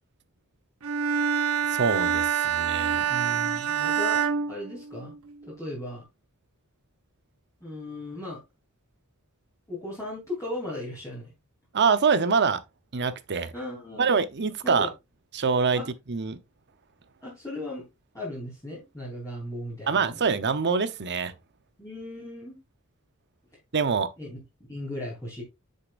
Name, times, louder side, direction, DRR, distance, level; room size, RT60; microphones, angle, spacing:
Bowed string instrument, 0.8-5.3, right 7 dB, 75° right, 1.1 m, -26 dB
voice 1, 1.7-3.0 11.7-12.6 12.9-13.5 14.0-14.9 15.3-15.8 16.1-16.4 19.9-21.3 23.7-24.1, right 5 dB, 50° right, 0.8 m, -25 dB
voice 2, 3.1-4.2 4.5-5.1 5.4-6.0 7.6-8.4 9.7-11.3 13.5-14.1 14.6-14.9 15.7-15.9 17.2-17.8 18.1-20.3 21.8-22.6 24.2-24.4 24.7-25.4, left 1 dB, 15° left, 3.2 m, -36 dB
8.3 x 6.6 x 2.5 m
head